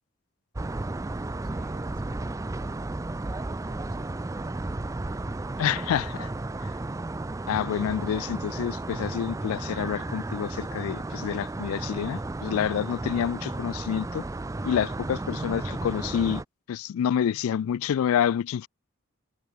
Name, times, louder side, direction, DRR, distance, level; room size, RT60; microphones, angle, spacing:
sound 1, 0.6-16.5, right 2 dB, 15° right, 0.3 m, -33 dB
voice 1, 1.4-2.3 3.2-4.8, right 2 dB, 40° right, 1.2 m, -55 dB
voice 2, 5.6-6.3 7.5-14.2 14.6-16.4 16.7-18.7, left 9 dB, 80° left, 0.3 m, -28 dB
head